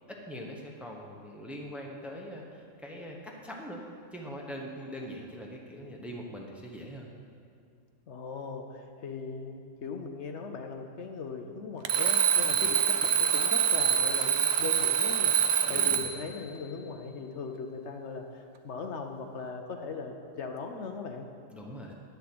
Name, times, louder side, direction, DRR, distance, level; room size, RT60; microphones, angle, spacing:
voice 1, 0.1-3.8 4.1-7.1 12.5-12.7 15.6-16.0 21.5-21.9, equal, ahead, -1 dB, 1.0 m, -42 dB
voice 2, 8.1-21.3, left 4 dB, 65° left, 4 dB, 1.0 m, -39 dB
Alarm, 11.8-16.3, right 8 dB, 60° right, 0.8 m, -25 dB
10.5 x 6.8 x 7.8 m, 2.3 s
omnidirectional pair, 1.3 m